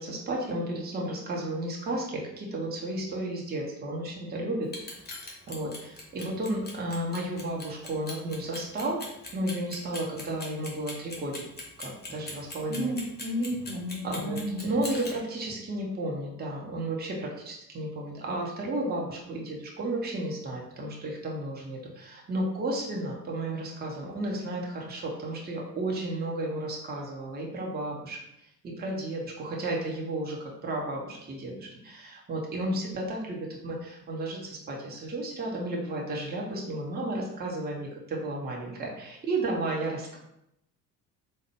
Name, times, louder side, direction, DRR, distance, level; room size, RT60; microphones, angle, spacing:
voice 1, 0.0-5.0 5.5-9.0 9.3-11.4 11.8-12.9 14.0-28.2 28.6-40.2, right 1 dB, 20° right, -2 dB, 0.8 m, -33 dB
Clock, 4.6-15.1, left 2 dB, 20° left, 1.1 m, -40 dB
voice 2, 12.7-14.7, equal, 60° right, 0 dB, 0.9 m, -32 dB
3.6 x 2.1 x 3.4 m, 0.81 s
figure-of-eight pair, 55°, 48 cm